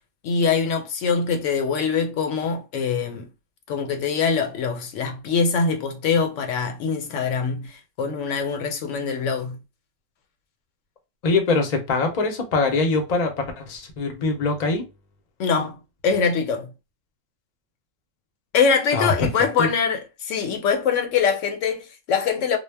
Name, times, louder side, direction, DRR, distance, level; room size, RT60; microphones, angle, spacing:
voice 1, 0.2-3.3 3.7-9.6 15.4-15.8 16.0-16.7 18.5-22.6, left 5 dB, 80° left, 0.9 m, -23 dB
voice 2, 11.2-14.8 18.9-19.3 19.6-19.7, left 3 dB, 45° left, 0.6 m, -23 dB
2.2 x 2.0 x 3.2 m
omnidirectional pair, 1.3 m